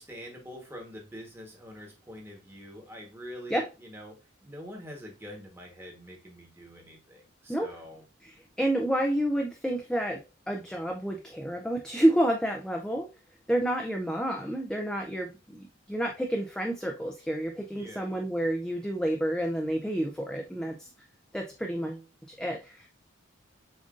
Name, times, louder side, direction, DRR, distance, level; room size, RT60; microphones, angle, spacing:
voice 1, 0.0-4.1 4.4-8.0 17.7-18.1, equal, 10° right, 0 dB, 1.1 m, -45 dB
voice 2, 8.2-10.2 10.5-13.1 13.5-20.9 21.3-22.0 22.4-22.9, right 1 dB, 5° left, 2 dB, 0.3 m, -29 dB
7.2 x 2.5 x 2.4 m, 0.31 s
head